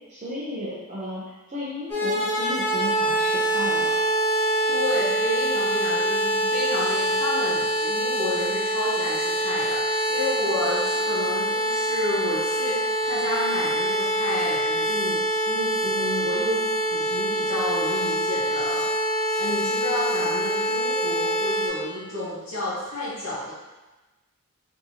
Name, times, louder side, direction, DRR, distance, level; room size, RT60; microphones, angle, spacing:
voice 1, 0.1-4.0, left 1 dB, 35° right, -8 dB, 0.7 m, -34 dB
sound 1, 1.9-21.7, right 1 dB, 10° left, 1.3 m, -25 dB
voice 2, 4.4-23.5, left 1 dB, 75° left, -10 dB, 1.1 m, -31 dB
4.4 x 2.9 x 2.8 m, 1.1 s
head